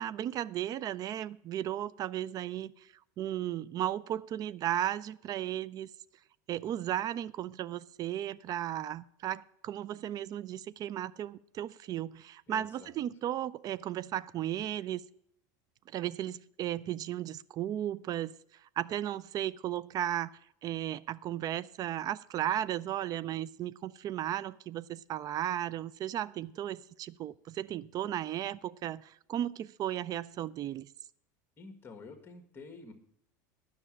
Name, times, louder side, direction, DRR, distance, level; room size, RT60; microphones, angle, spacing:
voice 1, 0.0-2.9 3.2-5.9 6.5-15.0 15.9-20.3 20.6-30.9, right 11 dB, 40° right, 0.4 m, -35 dB
voice 2, 12.5-13.0 31.6-32.9, left 3 dB, 25° left, 1.7 m, -49 dB
9.8 x 6.1 x 8.7 m
supercardioid pair, 105°, 10 cm